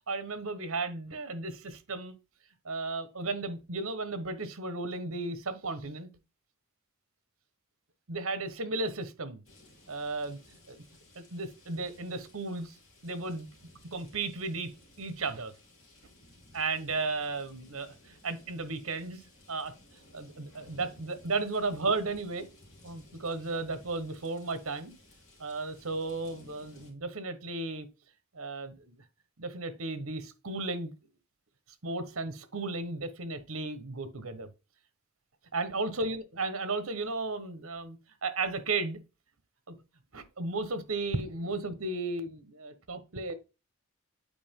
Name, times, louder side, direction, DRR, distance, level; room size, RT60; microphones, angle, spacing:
voice 1, 0.1-2.2 2.6-6.1 8.1-9.4 9.9-10.8 11.1-12.7 13.0-13.5 13.9-14.7 15.0-15.5 16.5-19.2 19.5-22.5 22.8-24.9 25.4-27.9 28.3-29.0 29.4-30.9 31.8-34.5 35.5-39.0 39.7-39.8 40.1-43.3, right 3 dB, 70° right, 1.2 m, -34 dB
sound 1, 9.5-26.9, left 1 dB, 65° left, 3.0 m, -58 dB
8.6 x 4.5 x 3.7 m
head